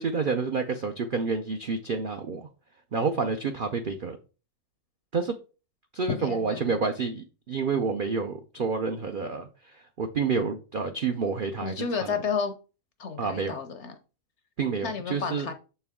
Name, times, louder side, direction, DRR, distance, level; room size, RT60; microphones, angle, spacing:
voice 1, 0.0-2.5 2.9-4.2 5.1-5.4 5.9-12.2 13.2-13.6 14.6-15.5, right 5 dB, 70° right, 0.5 m, -29 dB
voice 2, 6.1-6.8 11.6-12.5 13.0-13.9 14.8-15.5, left 5 dB, 60° left, 0.8 m, -31 dB
6.7 x 4.5 x 3.5 m
omnidirectional pair, 1.6 m